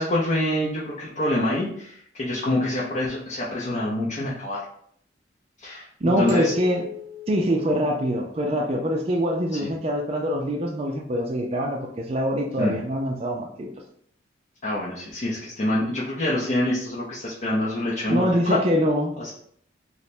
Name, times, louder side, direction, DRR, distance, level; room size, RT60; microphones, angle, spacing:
voice 1, 0.0-4.6 5.6-5.9 6.2-6.5 9.6-9.7 12.6-12.8 14.6-18.6 19.2-19.3, left 1 dB, 35° left, -6 dB, 0.6 m, -26 dB
voice 2, 6.0-6.8 7.3-13.7 18.1-19.1, equal, 30° right, 0 dB, 0.4 m, -24 dB
sound 1, 6.3-8.7, left 5 dB, 75° right, 0.8 m, -39 dB
3.2 x 2.1 x 4.1 m, 0.65 s
head